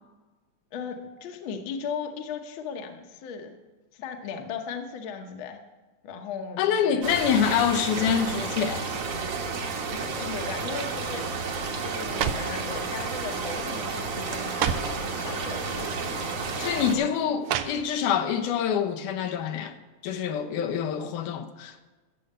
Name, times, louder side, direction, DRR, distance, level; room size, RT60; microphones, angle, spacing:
voice 1, 0.7-3.6 3.9-5.6 6.0-7.0 9.9-11.3 11.8-16.1 16.8-17.1, left 6 dB, 60° left, 1.4 m, -37 dB
voice 2, 6.6-8.9 16.6-19.8 20.0-21.8, left 8 dB, 85° left, 2.4 m, -26 dB
sound 1, 7.0-16.9, right 4 dB, 55° right, 1.8 m, -31 dB
sound 2, 10.7-11.0 11.8-12.6 13.4-13.7 14.0-14.1 14.4-15.0 16.0-16.1 17.4-18.2 18.6-18.7, right 9 dB, 80° right, 1.6 m, -31 dB
12.5 x 7.7 x 6.7 m
omnidirectional pair, 3.5 m